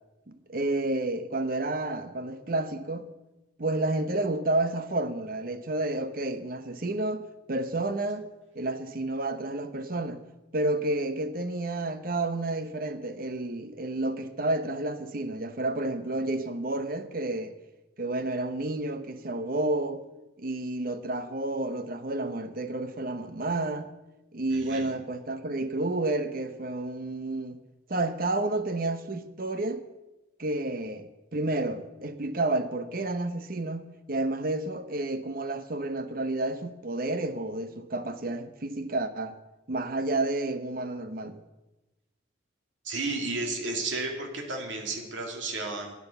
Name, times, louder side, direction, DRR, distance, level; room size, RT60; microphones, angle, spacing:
voice 1, 0.3-3.1 3.6-8.3 8.5-10.2 10.5-17.6 18.0-20.0 20.4-23.9 24.3-27.6 27.9-29.8 30.4-39.4 39.7-41.4, right 2 dB, 50° right, 0.9 m, -30 dB
voice 2, 24.5-24.9 42.8-45.9, right 3 dB, 85° right, 2.3 m, -33 dB
12.0 x 9.6 x 6.9 m
head